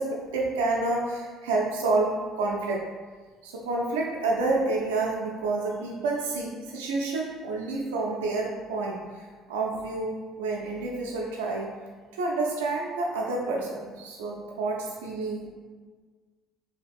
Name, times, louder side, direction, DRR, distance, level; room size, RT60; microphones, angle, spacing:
voice 1, 0.0-2.8 3.4-11.7 12.1-15.5, right 3 dB, 80° right, -2 dB, 0.4 m, -29 dB
2.8 x 2.4 x 3.4 m, 1.5 s
hypercardioid pair, 65°, 0 cm